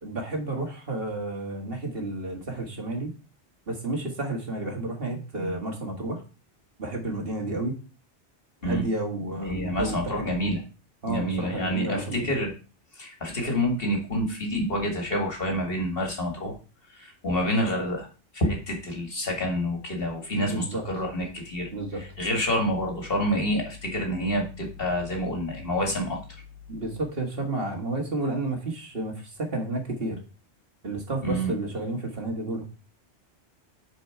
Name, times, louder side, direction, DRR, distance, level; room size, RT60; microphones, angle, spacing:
voice 1, 0.0-3.1 3.7-6.2 6.8-7.7 8.6-10.6 11.0-12.3 20.3-20.8 21.7-22.0 26.7-30.2 30.8-32.6, right 2 dB, 55° right, 2 dB, 2.0 m, -31 dB
voice 2, 9.5-10.6 11.1-12.5 12.9-16.6 16.9-18.1 18.3-21.7 22.0-26.2 31.2-31.5, equal, 55° left, 1 dB, 2.3 m, -28 dB
9.3 x 4.6 x 4.5 m, 0.34 s
omnidirectional pair, 1.2 m